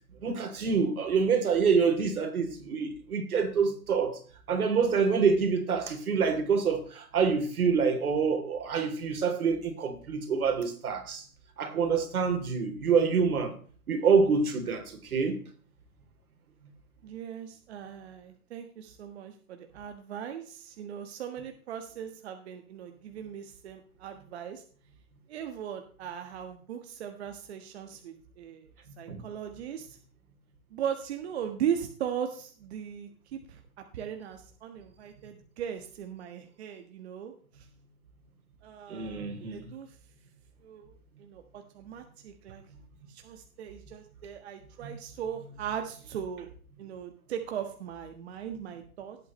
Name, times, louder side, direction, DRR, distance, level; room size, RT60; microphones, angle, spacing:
voice 1, 0.2-4.2 4.5-11.2 11.6-13.5 13.9-15.4 29.1-29.2 38.9-39.7 44.8-44.9, right 5 dB, 80° right, 3.4 m, -26 dB
voice 2, 17.0-24.6 25.3-28.7 29.0-30.0 30.7-33.6 33.9-37.7 38.6-40.0 40.6-42.6 43.1-46.5 46.8-49.2, right 9 dB, 45° right, 1.4 m, -38 dB
18.5 x 8.4 x 3.1 m
hypercardioid pair, 160°, 43 cm